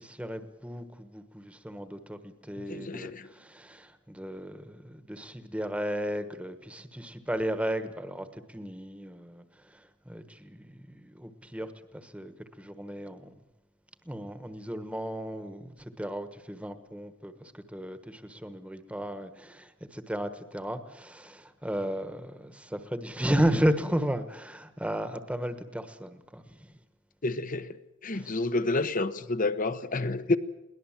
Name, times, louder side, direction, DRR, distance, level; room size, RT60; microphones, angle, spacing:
voice 1, 0.0-13.3 14.0-26.8 28.1-28.3, equal, 5° right, 1.3 m, -34 dB
voice 2, 2.6-3.3 27.2-30.4, left 2 dB, 45° left, 1.0 m, -29 dB
22.5 x 18.5 x 7.4 m
head